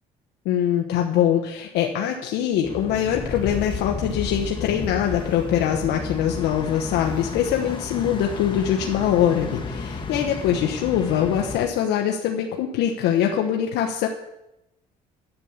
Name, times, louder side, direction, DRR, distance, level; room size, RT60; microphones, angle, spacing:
voice 1, 0.4-14.1, left 9 dB, 90° left, 2 dB, 1.1 m, -23 dB
sound 1, 2.6-11.7, left 4 dB, 30° left, 1.7 m, -32 dB
11.0 x 8.2 x 7.2 m, 0.89 s
cardioid pair, 110°, 17 cm